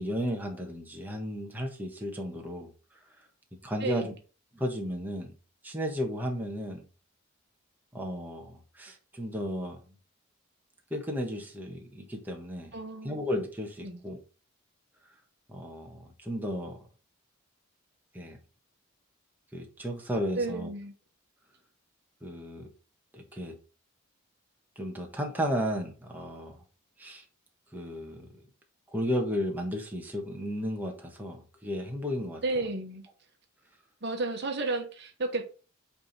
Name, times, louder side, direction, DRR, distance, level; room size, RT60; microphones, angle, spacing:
voice 1, 0.0-2.7 3.6-4.1 4.5-5.3 5.6-6.8 7.9-9.8 10.9-12.7 13.0-14.2 15.5-16.8 18.1-18.4 19.5-20.7 22.2-22.7 23.1-23.6 24.8-26.6 27.0-27.2 27.7-28.3 28.9-32.4, equal, 10° right, 1.3 m, -34 dB
voice 2, 3.8-4.1 12.7-13.1 13.8-14.0 20.4-20.9 32.4-33.0 34.0-35.4, right 2 dB, 55° right, 1.2 m, -32 dB
8.7 x 3.6 x 4.1 m
head